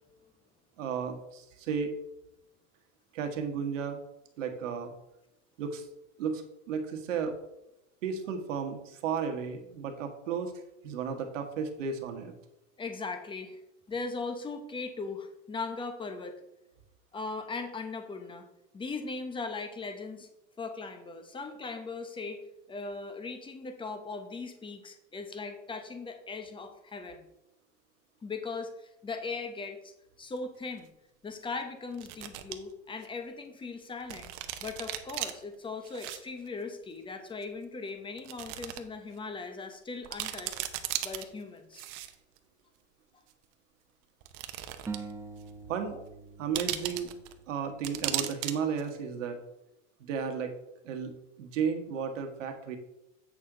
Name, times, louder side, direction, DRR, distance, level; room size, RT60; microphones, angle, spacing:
voice 1, 0.8-1.9 3.1-4.0 4.4-4.9 5.6-5.9 6.2-7.4 8.0-10.5 10.8-12.3 45.7-46.0 46.4-47.1 47.5-49.4 50.0-50.5 50.8-51.1 51.4-52.8, right 6 dB, 85° right, 5 dB, 1.4 m, -33 dB
voice 2, 12.8-13.6 13.9-16.4 17.1-18.5 18.7-20.3 20.6-27.2 28.2-29.9 30.2-30.9 31.2-34.3 34.6-40.6 41.0-41.8 43.1-43.2 45.9-46.0, left 4 dB, 15° left, 7 dB, 0.9 m, -39 dB
sound 1, 30.4-30.5 31.9-32.5 33.0-33.1 34.1-35.3 35.8-36.2 36.5-36.6 37.4-37.5 38.2-38.8 39.2-39.3 39.7-39.8 40.0-41.2 41.7-42.4 43.3-43.4 44.2-45.1 45.4-45.5 46.5-47.3 47.8-48.5 48.8-48.9, right 14 dB, 50° right, 0.9 m, -36 dB
sound 2, 44.9-48.1, right 4 dB, 10° right, 0.6 m, -44 dB
8.1 x 6.3 x 3.8 m, 0.89 s
supercardioid pair, 125°, 37 cm